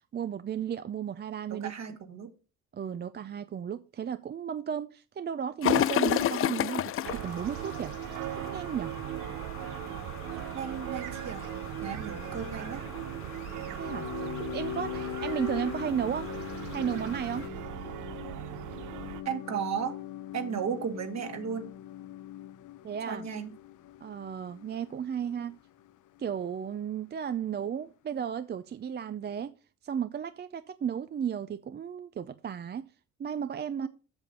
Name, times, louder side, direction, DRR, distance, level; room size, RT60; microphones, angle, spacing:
voice 1, 0.1-1.7 2.7-7.9 8.4-8.9 13.7-14.1 14.4-16.3 16.7-17.5 22.8-23.3 24.0-25.6 26.2-29.5 29.8-32.9 33.2-33.9, right 8 dB, 35° right, 0.5 m, -34 dB
voice 2, 1.5-2.3 10.5-11.4 11.8-12.8 19.3-19.9 20.3-21.7 23.1-23.5 33.8-33.9, right 7 dB, 60° right, 2.0 m, -34 dB
sound 1, 5.6-17.5, left 12 dB, 45° left, 0.4 m, -35 dB
sound 2, 7.0-19.2, right 13 dB, 80° right, 0.7 m, -39 dB
sound 3, 12.1-26.2 26.5-26.6, left 12 dB, 85° left, 0.7 m, -42 dB
8.0 x 6.7 x 5.3 m
cardioid pair, 90°, 30 cm